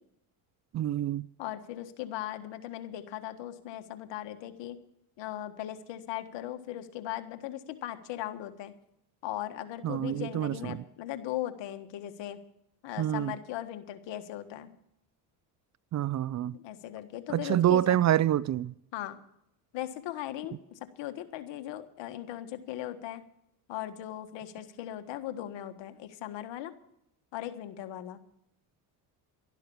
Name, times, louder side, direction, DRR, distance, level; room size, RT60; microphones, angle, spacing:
voice 1, 0.7-1.3 9.8-10.8 13.0-13.3 15.9-16.6 17.3-18.7, right 12 dB, 40° right, 0.4 m, -27 dB
voice 2, 1.4-4.8 5.2-8.7 9.2-12.4 12.8-14.7 16.5-18.0 18.9-19.2 19.7-23.2 23.7-26.7 27.3-28.2, left 13 dB, 70° left, 1.6 m, -38 dB
12.0 x 11.5 x 7.0 m
supercardioid pair, 75°, 46 cm